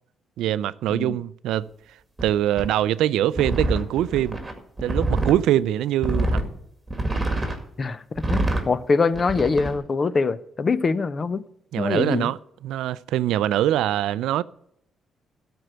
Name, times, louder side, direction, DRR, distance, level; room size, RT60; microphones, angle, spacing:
voice 1, 0.4-1.7 2.2-4.4 4.8-6.4 7.4-7.5 11.7-12.4 12.6-14.4, right 12 dB, 85° right, 0.3 m, -23 dB
sound 1, 2.2-2.3 2.6-2.7 3.4-5.4 6.0-6.5 6.9-7.6 8.2-8.7 9.1-9.7, right 1 dB, 15° right, 2.1 m, -25 dB
voice 2, 7.8-11.4 11.8-12.3, left 4 dB, 35° left, 0.6 m, -24 dB
12.5 x 4.5 x 7.7 m
cardioid pair, 90°, 0 cm